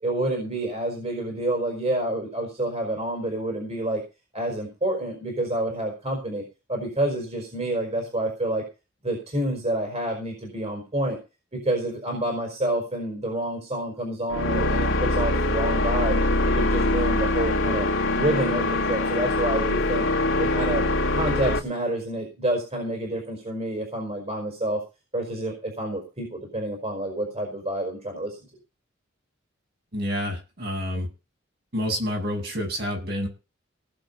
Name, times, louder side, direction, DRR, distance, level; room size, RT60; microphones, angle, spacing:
voice 1, 0.0-4.0 4.3-6.4 6.7-8.6 9.0-11.2 11.5-16.2 16.5-17.9 18.1-20.0 20.4-20.9 21.1-24.8 25.1-28.4, right 1 dB, 35° right, 1 dB, 5.1 m, -28 dB
sound 1, 14.3-21.6, left 2 dB, 80° left, 2.5 m, -23 dB
voice 2, 29.9-31.1 31.7-33.3, equal, 55° right, 1 dB, 7.9 m, -28 dB
19.0 x 7.4 x 5.5 m, 0.31 s
head